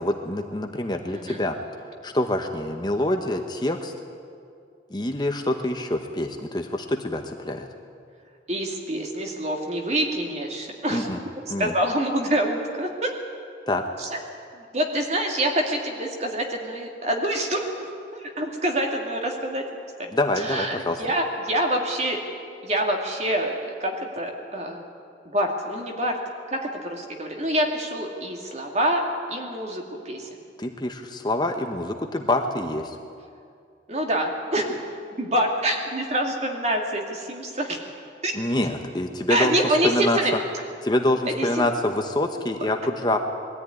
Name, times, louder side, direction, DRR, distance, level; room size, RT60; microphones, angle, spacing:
voice 1, 0.0-1.6 2.0-3.9 4.9-7.7 10.9-11.2 11.5-11.7 13.7-13.8 20.1-21.0 30.6-33.0 38.3-40.2 40.8-43.2, left 1 dB, 25° left, 4 dB, 1.0 m, -26 dB
voice 2, 8.5-11.3 11.6-13.1 14.0-14.2 14.6-19.6 20.0-22.2 22.6-24.8 25.3-26.2 26.5-29.0 29.3-30.3 33.9-34.8 35.2-37.8 38.2-38.3 39.3-40.3 41.3-41.7, right 1 dB, 35° right, 2 dB, 2.4 m, -26 dB
21.5 x 14.0 x 9.7 m, 2.4 s
head